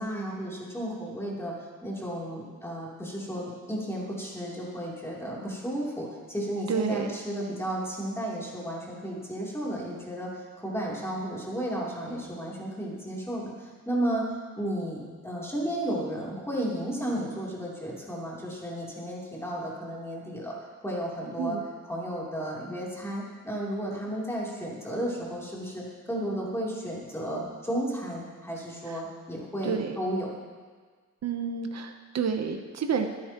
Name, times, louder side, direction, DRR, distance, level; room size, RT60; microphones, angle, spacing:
voice 1, 0.0-1.5 1.8-14.3 14.5-20.6 20.8-21.6 21.8-30.3, right 1 dB, 10° left, -5 dB, 3.2 m, -33 dB
voice 2, 6.7-7.2 21.4-21.6 28.9-29.0 29.6-30.0 31.2-33.1, right 6 dB, 55° right, 5 dB, 0.9 m, -29 dB
24.5 x 9.3 x 3.0 m, 1.5 s
wide cardioid pair, 130°, 31 cm